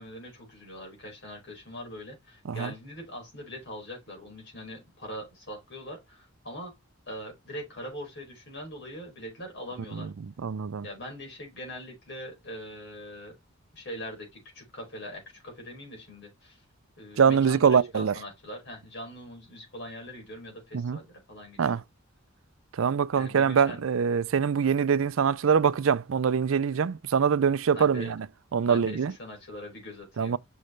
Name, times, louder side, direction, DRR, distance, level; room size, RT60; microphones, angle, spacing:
voice 1, 0.0-6.7 7.1-10.1 10.8-13.4 13.7-16.6 17.0-21.8 23.1-23.8 27.7-28.1 28.6-30.4, equal, 55° left, 5.0 m, -42 dB
voice 2, 10.4-10.9 17.2-18.1 20.7-21.0 21.6-21.8 22.7-28.3 28.5-29.1 30.2-30.4, right 6 dB, 70° right, 0.4 m, -24 dB
6.5 x 6.3 x 3.2 m
head